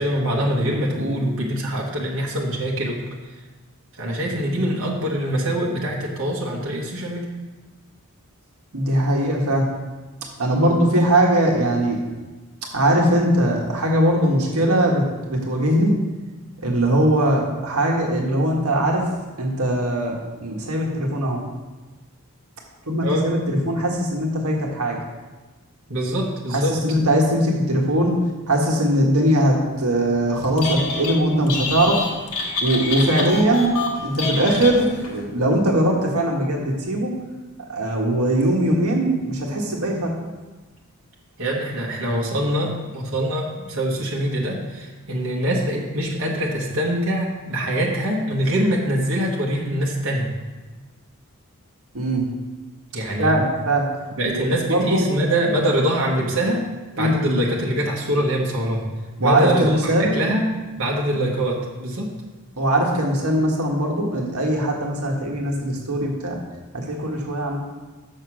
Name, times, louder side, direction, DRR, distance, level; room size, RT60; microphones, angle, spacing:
voice 1, 0.0-3.0 4.0-7.3 23.0-23.3 25.9-26.8 41.4-50.3 52.9-53.3 54.2-56.7 57.0-58.8 59.2-60.5 60.8-62.1, equal, 60° right, -3 dB, 1.5 m, -24 dB
voice 2, 8.7-9.7 10.4-12.0 12.7-15.9 16.6-19.0 19.4-20.1 20.4-21.4 22.9-25.0 26.5-32.0 32.6-33.7 34.0-37.1 37.6-40.1 51.9-52.2 53.2-53.9 54.3-55.0 57.0-57.2 59.2-60.2 62.6-66.4 66.7-67.6, right 1 dB, 80° right, -1 dB, 1.5 m, -20 dB
Telephone, 30.4-31.2 31.5-35.2, left 3 dB, 90° left, 1.5 m, -27 dB
6.7 x 6.6 x 6.3 m, 1.2 s
head